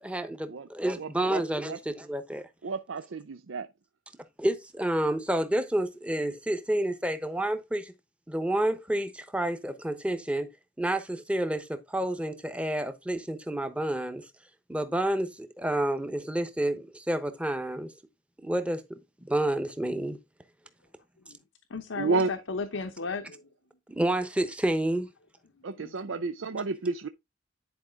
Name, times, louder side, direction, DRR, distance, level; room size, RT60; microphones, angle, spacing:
voice 1, 0.0-2.5 4.4-7.9 8.3-10.5 10.8-14.3 14.7-17.9 18.4-20.2 23.9-25.1, right 1 dB, 5° right, 0.9 m, -29 dB
voice 2, 1.0-1.4 1.7-1.8 2.6-3.7 22.0-22.3 25.6-27.1, right 3 dB, 90° right, 0.6 m, -31 dB
voice 3, 21.7-23.5 25.8-26.2, left 4 dB, 90° left, 0.9 m, -35 dB
10.5 x 4.8 x 3.6 m
head